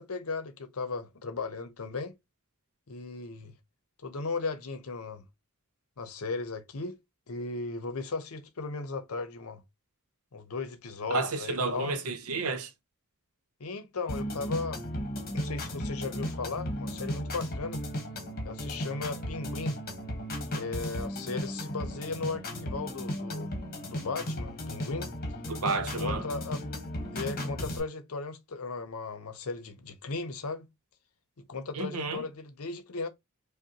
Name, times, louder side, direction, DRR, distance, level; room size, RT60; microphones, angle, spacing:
voice 1, 0.0-2.2 2.9-3.5 4.0-5.3 6.0-7.0 7.3-9.6 10.3-11.9 13.6-14.8 15.3-17.8 18.4-19.8 20.5-23.5 23.8-25.1 26.0-26.6 27.1-30.7 31.4-33.1, left 3 dB, 75° left, 0.7 m, -36 dB
voice 2, 11.1-12.7 25.5-26.2 31.8-32.2, right 3 dB, 75° right, 0.7 m, -31 dB
sound 1, 14.1-27.8, equal, 45° left, 1.1 m, -35 dB
5.2 x 2.2 x 2.8 m
head